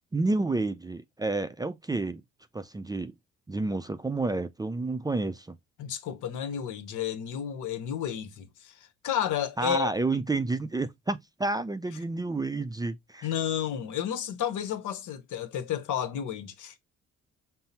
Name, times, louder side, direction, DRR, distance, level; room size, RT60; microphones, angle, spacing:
voice 1, 0.1-2.2 2.5-3.1 3.5-5.6 9.6-13.3, right 2 dB, 15° right, 0.4 m, -30 dB
voice 2, 5.8-8.8 9.0-9.9 13.2-16.8, left 9 dB, 80° left, 0.9 m, -32 dB
5.6 x 2.0 x 4.0 m
cardioid pair, 90°, 30 cm